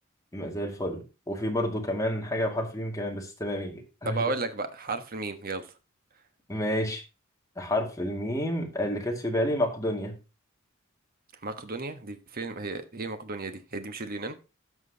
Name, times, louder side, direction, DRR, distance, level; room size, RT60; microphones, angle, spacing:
voice 1, 0.3-4.2 6.5-7.0 7.6-10.2, equal, 15° left, 1 dB, 2.2 m, -30 dB
voice 2, 4.0-5.7 11.4-14.4, right 3 dB, 45° right, 8 dB, 1.3 m, -34 dB
16.5 x 6.1 x 2.8 m, 0.30 s
head